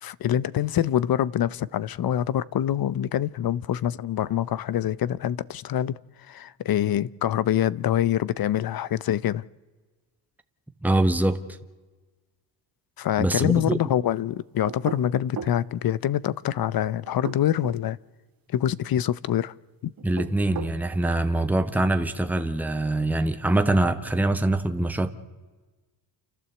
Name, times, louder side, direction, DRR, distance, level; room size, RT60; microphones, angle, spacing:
voice 1, 0.0-6.0 6.3-9.4 13.0-18.0 18.5-19.5 19.8-19.9, left 11 dB, 50° left, 0.7 m, -25 dB
voice 2, 10.8-11.4 13.2-13.8 20.0-25.1, right 2 dB, 5° right, 1.2 m, -24 dB
sound 1, 14.7-15.6 17.1-17.8 20.0-20.8, right 7 dB, 50° right, 1.6 m, -36 dB
29.5 x 12.5 x 8.0 m
cardioid pair, 85°, 45 cm